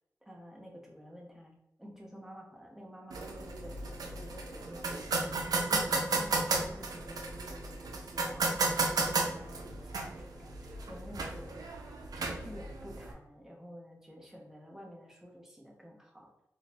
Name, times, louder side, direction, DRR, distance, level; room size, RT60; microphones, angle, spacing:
voice 1, 0.3-5.3 5.5-11.8 12.1-16.3, equal, 5° right, -1 dB, 1.1 m, -50 dB
sound 1, 3.1-13.1, right 3 dB, 90° right, 0.4 m, -34 dB
3.8 x 2.4 x 2.9 m, 0.86 s
cardioid pair, 45°, 6 cm